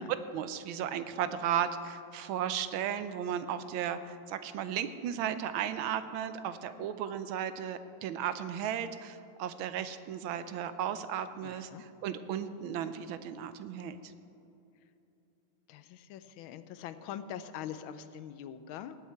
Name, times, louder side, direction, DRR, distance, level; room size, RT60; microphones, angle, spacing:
voice 1, 0.0-14.1, right 9 dB, 85° right, 11 dB, 1.5 m, -35 dB
voice 2, 11.4-11.8 15.7-19.0, left 9 dB, 85° left, 12 dB, 1.4 m, -43 dB
18.5 x 8.3 x 4.5 m, 2.8 s
omnidirectional pair, 2.2 m